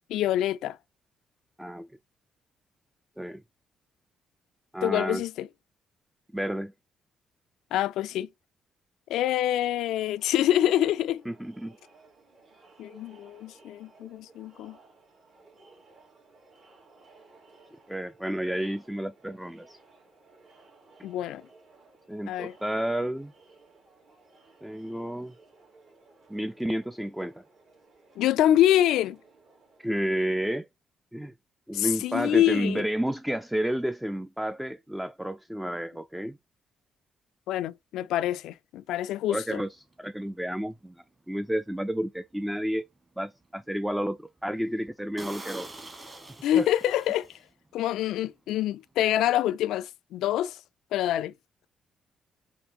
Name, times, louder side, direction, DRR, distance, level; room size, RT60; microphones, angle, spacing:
voice 1, 0.1-0.8 4.8-5.5 7.7-8.3 9.1-11.2 12.8-14.8 21.0-21.4 22.3-22.5 28.2-29.2 31.7-32.9 37.5-39.6 46.4-47.3 47.7-50.6 50.9-51.3, left 12 dB, 85° left, 0.3 m, -26 dB
voice 2, 4.7-5.2 6.3-6.7 11.3-11.8 17.9-19.8 22.1-23.3 24.6-25.3 26.3-27.4 29.8-30.7 31.1-31.3 31.7-36.4 39.3-39.7 40.0-41.0 41.3-42.8 43.2-45.7 46.6-46.7, equal, 5° right, 0.4 m, -31 dB
Crowd, 10.2-30.1, right 3 dB, 60° right, 2.8 m, -58 dB
sound 1, 39.9-40.1 40.6-40.8 41.3-41.4 41.8-41.9 42.4-43.0 43.4-43.5 43.9-44.0 44.3-44.4 44.7-44.8 45.2-47.7 48.0-48.2, right 2 dB, 25° right, 1.4 m, -44 dB
5.2 x 2.6 x 2.9 m
cardioid pair, 90°, 0 cm